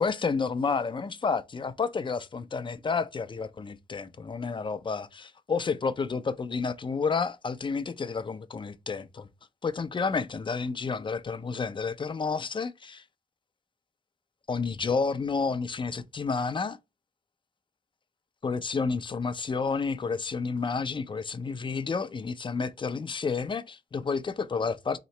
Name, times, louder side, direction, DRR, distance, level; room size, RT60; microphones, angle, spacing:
voice 1, 0.0-9.3 9.6-13.0 14.5-16.8 18.4-25.0, left 5 dB, 30° left, 0.4 m, -30 dB
3.1 x 2.9 x 4.2 m
cardioid pair, 75°, 16 cm